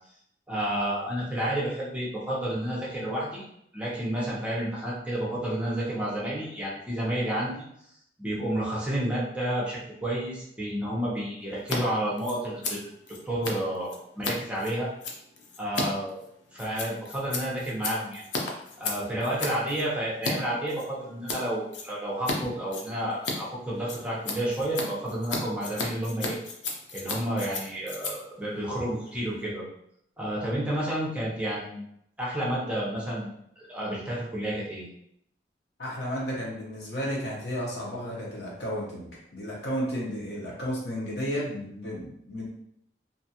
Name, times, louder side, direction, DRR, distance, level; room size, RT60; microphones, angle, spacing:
voice 1, 0.5-3.4 3.7-7.6 8.2-12.9 13.2-14.9 15.6-16.2 16.5-18.2 18.8-26.4 26.9-29.6 30.2-31.8 32.2-34.9, right 1 dB, 5° right, -6 dB, 0.7 m, -30 dB
Scissors, 11.6-11.8 12.0-20.3 20.7-21.4 21.7-22.4 22.6-29.4, left 3 dB, 85° left, 0.5 m, -35 dB
voice 2, 35.8-42.5, equal, 65° left, -4 dB, 0.9 m, -33 dB
2.6 x 2.3 x 2.7 m, 0.73 s
head